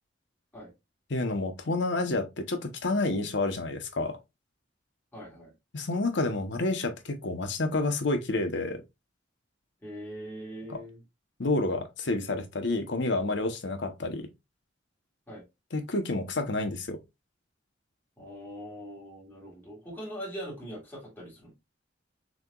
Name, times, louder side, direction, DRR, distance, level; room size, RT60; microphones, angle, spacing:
voice 1, 1.1-4.2 5.7-8.8 10.7-10.8 11.4-14.2 15.7-17.0, left 2 dB, 65° left, 0.9 m, -29 dB
voice 2, 5.1-5.5 9.8-11.0 15.3-15.4 18.2-21.5, equal, 10° left, 2.0 m, -41 dB
6.1 x 2.9 x 2.3 m
head